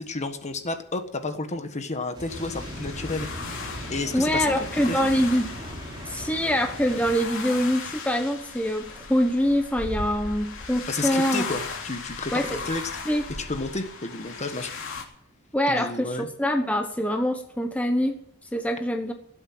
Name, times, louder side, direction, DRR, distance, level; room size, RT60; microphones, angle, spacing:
voice 1, 0.0-3.3 3.9-5.0 10.9-12.9 13.4-14.7 15.7-16.3, left 3 dB, 35° left, 8 dB, 1.4 m, -31 dB
sound 1, 2.1-7.3, equal, 20° right, 4.4 m, -38 dB
sound 2, 2.3-15.0, left 4 dB, 65° left, 3.0 m, -37 dB
voice 2, 4.1-5.5 6.1-11.4 12.3-12.6 13.1-13.2 15.5-18.2 18.5-19.1, equal, 5° left, 4 dB, 1.0 m, -24 dB
18.0 x 8.1 x 7.8 m, 0.73 s
head